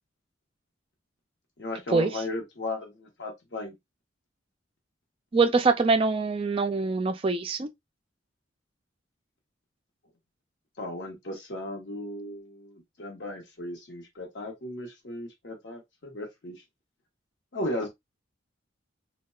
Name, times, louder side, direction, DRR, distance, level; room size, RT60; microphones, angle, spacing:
voice 1, 1.6-3.7 10.8-16.6 17.5-17.9, left 1 dB, 65° left, 0.9 m, -36 dB
voice 2, 5.3-7.7, right 4 dB, 30° right, 0.3 m, -24 dB
2.8 x 2.2 x 2.2 m
head